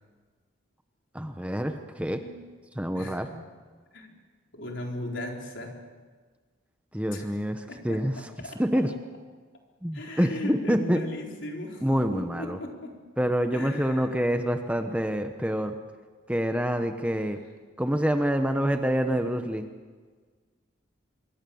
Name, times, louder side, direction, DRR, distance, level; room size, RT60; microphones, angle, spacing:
voice 1, 1.1-2.2 2.7-3.3 6.9-8.3 8.6-8.9 9.8-11.0 11.8-12.6 13.2-15.8 16.3-17.4 17.8-19.6, equal, 5° right, 6 dB, 1.0 m, -26 dB
voice 2, 2.1-2.4 2.9-3.4 3.9-4.2 4.5-5.8 7.1-7.3 7.7-8.6 9.9-12.9 13.5-14.2, left 1 dB, 65° left, 1 dB, 4.2 m, -38 dB
25.5 x 23.5 x 7.1 m, 1.5 s
head